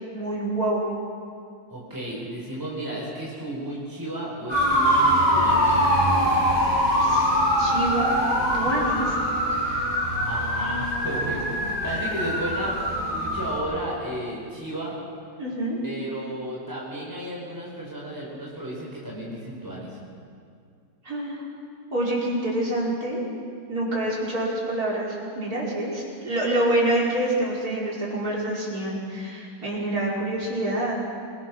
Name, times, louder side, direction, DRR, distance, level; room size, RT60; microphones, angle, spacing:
voice 1, 0.1-0.8 7.0-7.3 7.6-8.1 8.5-9.2 9.5-10.0 11.1-11.2 11.9-12.0 15.4-15.8 21.0-21.4 21.9-23.2 23.7-31.0, right 1 dB, 60° right, -6 dB, 5.6 m, -27 dB
voice 2, 1.7-5.8 10.2-14.9 15.8-20.0, right 1 dB, 10° right, -5 dB, 5.1 m, -33 dB
sound 1, 4.5-13.6, equal, 20° left, 6.2 m, -23 dB
26.5 x 18.5 x 6.3 m, 2.3 s
omnidirectional pair, 1.8 m